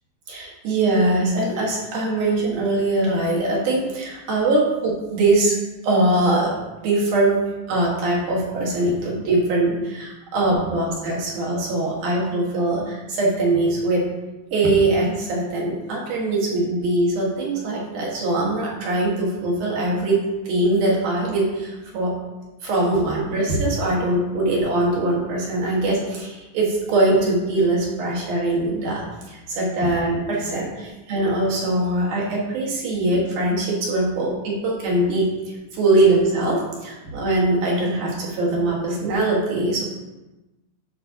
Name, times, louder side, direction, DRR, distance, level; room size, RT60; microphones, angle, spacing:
voice 1, 0.3-5.6 5.8-7.4 7.7-14.0 14.5-20.2 20.5-22.1 22.6-35.3 35.7-39.8, right 2 dB, 60° right, -4 dB, 3.0 m, -22 dB
11.5 x 5.3 x 2.8 m, 1.1 s
omnidirectional pair, 4.3 m